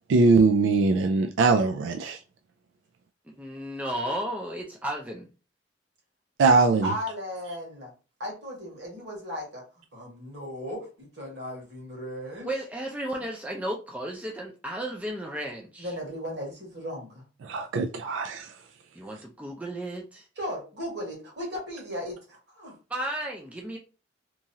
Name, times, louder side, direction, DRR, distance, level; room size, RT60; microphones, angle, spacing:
voice 1, 0.1-2.2 6.4-6.9 17.4-18.5, right 4 dB, 85° right, 0.3 m, -21 dB
voice 2, 3.3-5.3 12.4-15.9 18.9-20.3 22.9-23.8, right 1 dB, 10° right, 0.4 m, -34 dB
voice 3, 6.8-7.9 8.2-12.5 15.8-17.3 20.4-22.8, equal, 60° right, 1.4 m, -36 dB
3.0 x 2.4 x 2.7 m
head